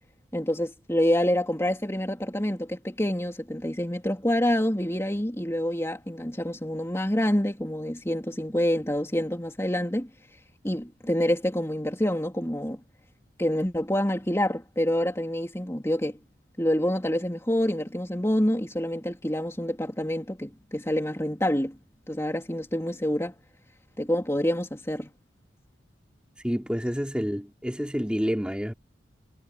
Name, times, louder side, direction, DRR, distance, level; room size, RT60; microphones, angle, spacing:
voice 1, 0.3-10.1 10.6-12.8 13.4-16.2 16.6-21.8 22.1-23.3 24.0-25.1, equal, 15° left, 3.4 m, -27 dB
voice 2, 26.4-28.7, equal, 5° right, 3.0 m, -28 dB
head